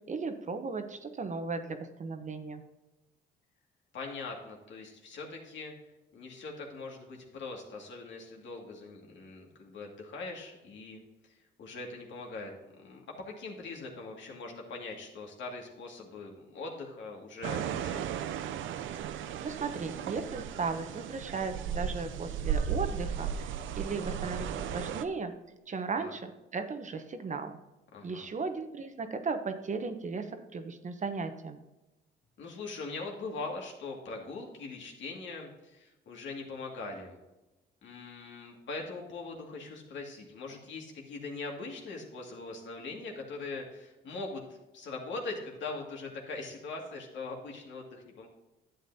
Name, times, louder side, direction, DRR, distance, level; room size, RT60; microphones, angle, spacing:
voice 1, 0.1-2.6 19.2-25.3 25.7-27.6 28.0-31.6, right 4 dB, 40° right, 8 dB, 0.9 m, -36 dB
voice 2, 3.9-5.7 6.1-18.0 26.0-26.1 27.9-28.3 32.4-37.2 37.8-44.4 44.7-48.3, left 3 dB, 70° left, 0 dB, 2.2 m, -41 dB
sound 1, 17.4-25.0, right 8 dB, 75° right, 0.5 m, -35 dB
11.0 x 8.3 x 2.8 m, 1.0 s
cardioid pair, 90°, 20 cm